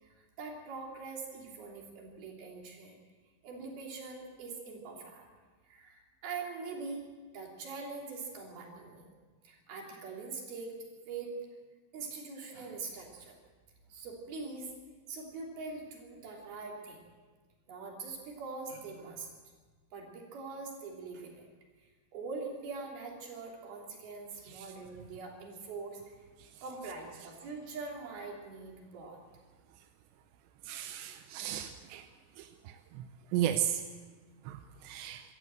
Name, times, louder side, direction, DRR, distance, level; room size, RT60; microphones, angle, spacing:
voice 1, 0.0-2.9 3.4-5.3 5.7-7.1 7.3-9.1 9.5-10.8 11.1-11.3 11.9-13.4 13.9-14.7 15.1-17.0 17.7-19.3 19.9-21.4 22.1-26.1 26.6-29.2, right 4 dB, 60° right, -1 dB, 5.0 m, -43 dB
voice 2, 30.7-32.0 32.4-32.5 33.3-33.8 34.5-34.6 34.8-35.2, right 11 dB, 90° right, 7 dB, 3.0 m, -33 dB
25.0 x 13.5 x 7.7 m, 1.4 s
omnidirectional pair, 5.0 m